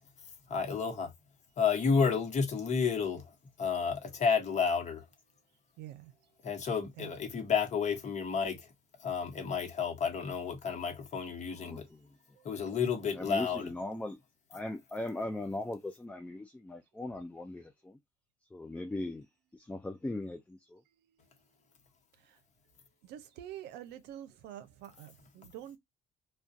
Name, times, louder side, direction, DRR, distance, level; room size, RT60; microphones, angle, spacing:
voice 1, 0.2-1.1 1.6-5.1 6.4-8.7 9.0-11.9 12.4-13.7, left 6 dB, 45° left, 0.9 m, -31 dB
voice 2, 5.8-6.1 7.0-7.1 12.4-12.5 21.1-21.4 22.2-22.4 23.0-25.8, right 11 dB, 85° right, 0.6 m, -47 dB
voice 3, 13.2-14.2 14.5-18.0 18.5-19.3 19.5-20.8, left 2 dB, 10° left, 0.3 m, -39 dB
2.3 x 2.2 x 2.5 m
cardioid pair, 110°, 17 cm